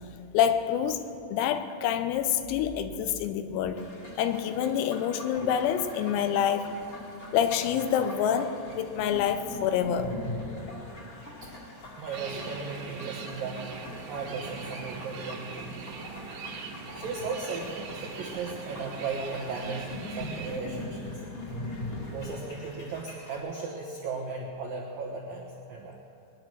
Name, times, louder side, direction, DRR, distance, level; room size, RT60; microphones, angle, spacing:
voice 1, 0.3-1.0 1.3-3.8 4.2-6.7 7.3-10.1, left 9 dB, 90° left, 9 dB, 3.5 m, -27 dB
sound 1, 3.8-23.4, left 2 dB, 40° left, 2.2 m, -42 dB
voice 2, 12.0-13.7 14.1-15.7 16.9-21.1 22.1-26.0, right 4 dB, 80° right, -1 dB, 2.0 m, -36 dB
sound 2, 12.1-20.6, right 5 dB, 60° right, 2.5 m, -41 dB
21.5 x 10.5 x 6.1 m, 2.7 s
omnidirectional pair, 6.0 m